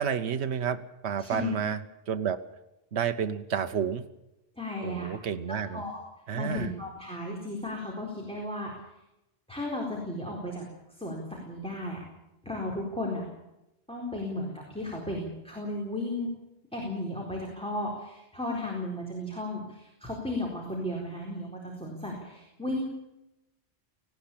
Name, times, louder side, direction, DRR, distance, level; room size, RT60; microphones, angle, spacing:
voice 1, 0.0-2.5 2.9-4.1 4.8-5.8 6.3-6.7, right 7 dB, 75° right, 9 dB, 1.2 m, -30 dB
voice 2, 1.2-1.6 4.6-5.1 5.5-5.9 6.3-8.7 9.5-10.6 11.0-12.0 12.4-13.2 13.9-16.3 16.7-22.9, left 1 dB, 5° left, -2 dB, 4.3 m, -34 dB
19.0 x 17.0 x 8.6 m, 0.93 s
omnidirectional pair, 1.1 m